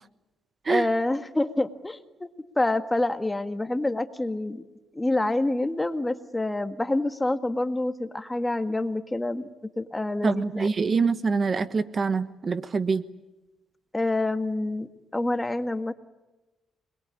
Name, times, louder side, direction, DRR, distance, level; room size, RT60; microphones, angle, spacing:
voice 1, 0.7-2.3 2.6-4.6 4.9-9.4 9.8-10.7 13.9-14.9 15.1-15.9, left 2 dB, 15° left, 9 dB, 1.8 m, -27 dB
voice 2, 10.2-13.0, right 4 dB, 40° right, 12 dB, 1.3 m, -25 dB
28.5 x 21.5 x 8.4 m, 1.1 s
cardioid pair, 90°, 0 cm